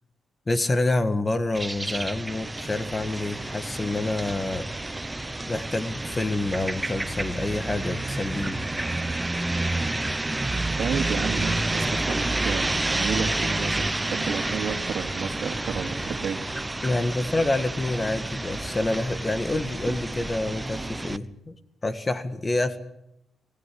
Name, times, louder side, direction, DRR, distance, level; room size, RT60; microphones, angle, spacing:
voice 1, 0.5-4.7 5.5-8.6 16.8-21.5 21.8-22.8, left 2 dB, 25° left, 10 dB, 1.6 m, -27 dB
sound 1, 1.5-21.2, right 2 dB, 15° right, 1.1 m, -29 dB
voice 2, 10.8-16.4 19.9-20.0, right 6 dB, 70° right, 6 dB, 2.4 m, -31 dB
25.5 x 15.5 x 8.5 m, 0.83 s
cardioid pair, 85°, 0 cm